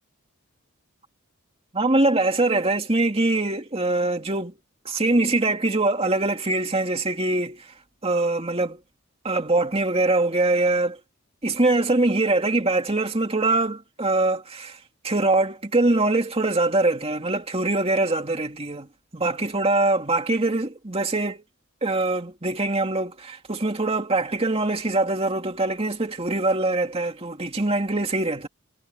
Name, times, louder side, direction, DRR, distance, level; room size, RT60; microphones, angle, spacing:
voice 1, 1.7-4.6 4.8-7.7 8.0-8.8 9.2-11.0 11.4-21.4 21.8-28.5, right 2 dB, 30° right, 2.3 m, -23 dB
head